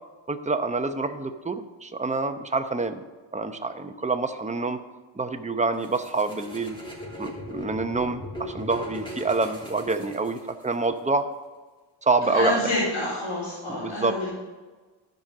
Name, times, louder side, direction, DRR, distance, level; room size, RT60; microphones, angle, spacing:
voice 1, 0.3-3.0 3.3-4.8 5.1-6.8 7.2-11.3 12.0-12.6 13.8-14.2, right 3 dB, 15° right, 7 dB, 0.8 m, -27 dB
sound 1, 5.8-10.7, equal, 10° left, 2.7 m, -39 dB
voice 2, 12.2-14.3, left 2 dB, 85° left, -10 dB, 3.9 m, -28 dB
12.0 x 5.2 x 6.7 m, 1.3 s
cardioid pair, 75°, 47 cm